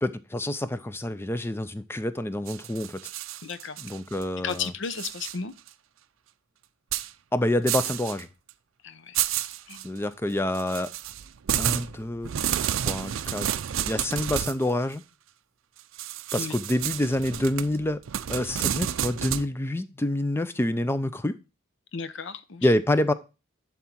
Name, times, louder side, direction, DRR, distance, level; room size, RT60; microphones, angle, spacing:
voice 1, 0.0-3.0 3.8-4.7 7.3-8.3 9.8-10.9 11.6-12.3 12.9-13.5 13.9-15.0 16.3-18.0 18.3-21.4 22.6-23.1, left 1 dB, 10° left, 0.4 m, -27 dB
sound 1, 2.5-4.2 4.5-5.4 5.7-5.8 6.9-7.1 7.7-8.2 8.5-8.6 9.1-9.9 10.5-14.6 16.0-19.5, right 10 dB, 75° right, 0.4 m, -30 dB
voice 2, 3.4-3.8 4.4-5.5 8.8-9.2 9.7-9.8 16.4-16.6 21.9-22.7, left 6 dB, 65° left, 0.6 m, -34 dB
11.0 x 3.7 x 4.3 m
head